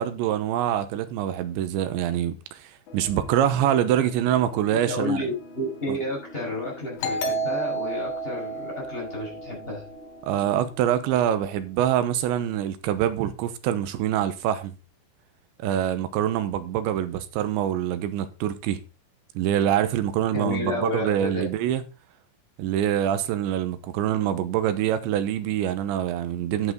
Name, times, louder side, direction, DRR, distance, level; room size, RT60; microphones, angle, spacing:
voice 1, 0.0-5.3 5.9-6.0 10.3-14.7 15.6-18.8 19.4-21.8 22.6-26.7, right 11 dB, 80° right, 3.1 m, -25 dB
sound 1, 2.9-12.2, left 2 dB, 50° left, 2.7 m, -46 dB
voice 2, 4.7-9.8 20.3-21.5, left 1 dB, 10° left, 5.9 m, -31 dB
Doorbell, 7.0-10.4, right 2 dB, 90° left, 5.2 m, -31 dB
11.0 x 9.4 x 3.9 m
omnidirectional pair, 5.4 m